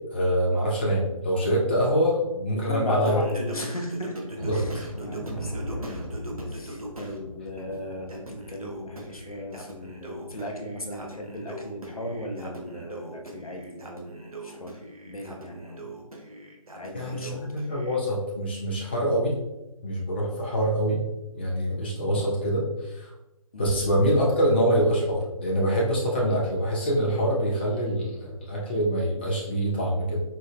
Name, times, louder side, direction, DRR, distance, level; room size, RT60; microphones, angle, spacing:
voice 1, 0.1-3.2 4.4-4.8 16.9-19.3 19.8-21.0 21.3-23.1 23.6-30.2, equal, 20° left, -5 dB, 0.4 m, -25 dB
voice 2, 2.5-6.1 6.5-14.8 15.1-16.1 16.7-17.4 23.5-23.7, left 1 dB, 80° left, 1 dB, 0.6 m, -37 dB
Singing, 3.1-7.2 7.6-18.0, right 1 dB, 80° right, 0.7 m, -41 dB
sound 1, 4.4-11.1 11.5-11.6 12.0-12.2 12.7-12.8, equal, 50° right, 1.0 m, -39 dB
4.3 x 2.0 x 2.4 m, 0.97 s
figure-of-eight pair, 145°, 18 cm